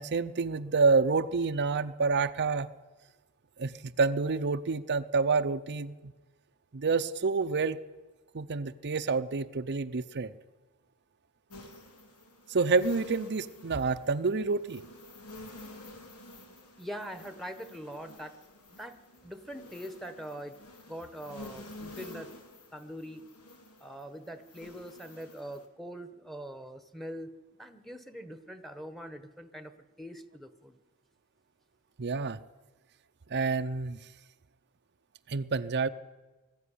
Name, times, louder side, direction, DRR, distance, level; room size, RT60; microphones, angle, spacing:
voice 1, 0.0-2.7 3.6-6.1 6.7-7.8 8.3-10.3 12.5-14.8 32.0-32.4 33.3-34.0 35.3-35.9, right 4 dB, 50° right, 8 dB, 0.6 m, -28 dB
sound 1, 11.5-25.7, left 2 dB, 90° left, 2.8 m, -50 dB
voice 2, 16.8-18.3 18.8-19.0 19.2-20.6 20.9-22.3 22.7-23.2 23.8-27.3 27.6-29.7 30.0-30.8, equal, ahead, 10 dB, 1.2 m, -43 dB
20.5 x 14.0 x 10.0 m, 1.2 s
head